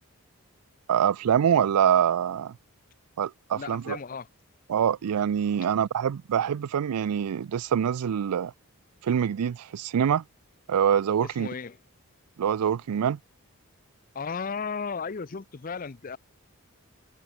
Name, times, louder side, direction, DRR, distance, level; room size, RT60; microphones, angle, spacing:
voice 1, 0.9-2.5 3.2-4.0 4.7-8.5 9.0-10.2 10.7-11.5 12.4-13.2, right 8 dB, 90° right, 0.4 m, -25 dB
voice 2, 3.5-4.3 11.2-11.8 14.1-16.2, left 5 dB, 40° left, 0.5 m, -35 dB
head